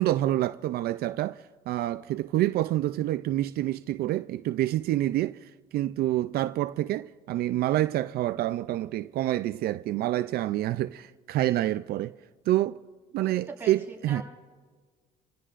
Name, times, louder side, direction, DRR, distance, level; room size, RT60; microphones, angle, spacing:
voice 1, 0.0-12.1 12.5-12.8 13.1-14.2, right 14 dB, 65° right, 0.4 m, -27 dB
voice 2, 13.1-14.2, right 3 dB, 15° right, 5.7 m, -42 dB
30.0 x 16.5 x 2.5 m
cardioid pair, 110°, 17 cm